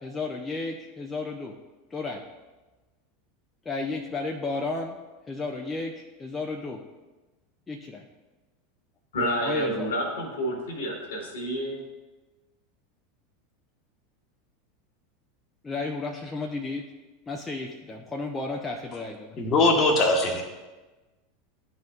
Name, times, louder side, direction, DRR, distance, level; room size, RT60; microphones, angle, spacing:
voice 1, 0.0-1.6 1.9-2.3 3.7-5.0 5.3-6.8 7.7-8.1 9.4-9.9 15.6-16.9 17.3-19.4, left 3 dB, 15° left, 1 dB, 0.6 m, -33 dB
voice 2, 9.1-11.8, equal, 65° left, 1 dB, 1.5 m, -29 dB
voice 3, 19.4-20.4, left 2 dB, 35° left, 2 dB, 1.2 m, -21 dB
11.5 x 4.2 x 2.4 m, 1.2 s
figure-of-eight pair, 80°, 0 cm